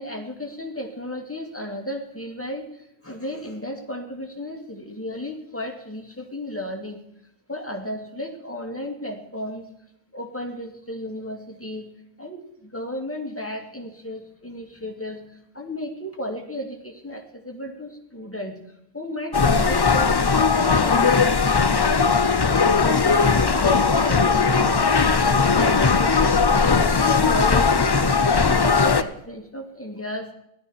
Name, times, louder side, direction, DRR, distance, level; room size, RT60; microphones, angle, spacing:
voice 1, 0.0-7.0 7.5-9.7 10.1-11.9 12.2-18.6 18.9-22.0 22.8-24.9 25.2-26.5 27.2-30.3, left 1 dB, 10° left, 2 dB, 2.3 m, -34 dB
sound 1, 19.3-29.0, left 5 dB, 30° left, 0.5 m, -18 dB
16.0 x 12.0 x 5.7 m, 0.77 s
omnidirectional pair, 1.1 m